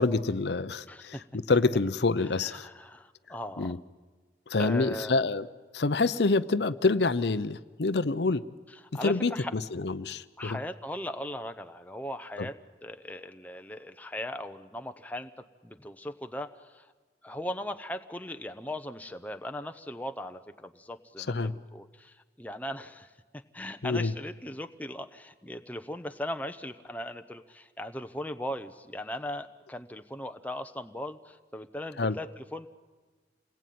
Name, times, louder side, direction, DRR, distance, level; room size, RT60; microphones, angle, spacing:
voice 1, 0.0-2.7 3.6-3.8 4.5-5.5 5.7-8.4 9.0-10.6 12.4-12.5 21.3-21.5 23.8-24.1 32.0-32.2, left 3 dB, 75° left, 14 dB, 0.7 m, -27 dB
voice 2, 0.9-1.3 2.4-3.8 4.6-5.2 8.9-9.5 10.4-16.9 17.2-32.7, left 1 dB, 10° left, 8 dB, 0.8 m, -39 dB
28.0 x 20.0 x 9.4 m, 1.4 s
head